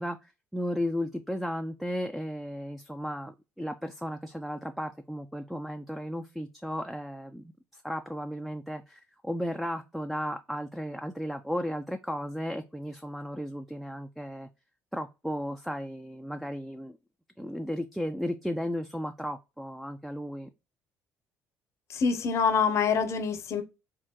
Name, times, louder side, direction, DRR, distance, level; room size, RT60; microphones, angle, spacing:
voice 1, 0.0-14.5 14.9-17.0 17.4-20.5, equal, ahead, 0.3 m, -35 dB
voice 2, 21.9-23.6, left 6 dB, 50° left, 0.6 m, -25 dB
3.5 x 2.1 x 2.9 m
supercardioid pair, 80°, 6 cm